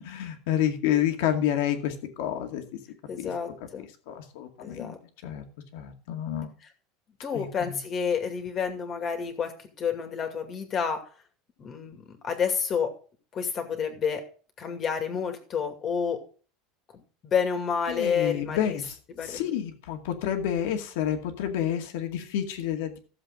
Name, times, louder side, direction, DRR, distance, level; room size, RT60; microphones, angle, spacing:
voice 1, 0.1-2.8 3.2-3.3 3.8-4.9 5.2-5.4 5.7-6.5 7.3-7.8 17.9-19.0 19.2-23.0, left 10 dB, 75° left, 5 dB, 2.2 m, -29 dB
voice 2, 3.1-3.9 4.6-5.0 7.2-11.0 11.6-12.9 13.3-14.2 14.6-16.2 16.9-18.8 19.2-19.4, left 6 dB, 30° left, 6 dB, 2.3 m, -29 dB
15.0 x 7.5 x 3.8 m, 0.39 s
supercardioid pair, 155°, 0 cm